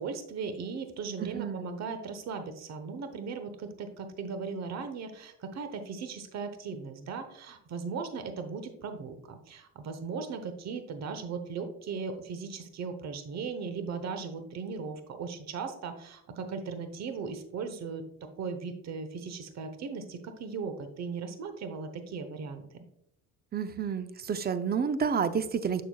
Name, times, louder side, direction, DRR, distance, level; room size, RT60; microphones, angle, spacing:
voice 1, 0.0-22.8, right 5 dB, 50° right, 9 dB, 1.0 m, -38 dB
voice 2, 1.2-1.6 23.5-25.8, right 6 dB, 25° right, 11 dB, 0.5 m, -30 dB
7.0 x 6.2 x 2.3 m, 0.74 s
supercardioid pair, 90°, 35 cm